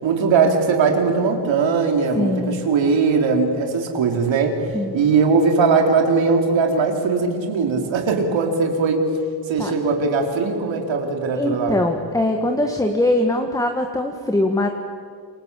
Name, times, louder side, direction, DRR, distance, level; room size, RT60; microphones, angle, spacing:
voice 1, 0.0-9.1 9.5-11.8, right 4 dB, 85° right, 3 dB, 4.1 m, -20 dB
voice 2, 2.2-2.6 4.7-4.9 9.6-9.7 11.3-14.7, left 1 dB, 10° left, 4 dB, 1.8 m, -21 dB
27.5 x 25.5 x 8.4 m, 2.2 s
cardioid pair, 135°, 44 cm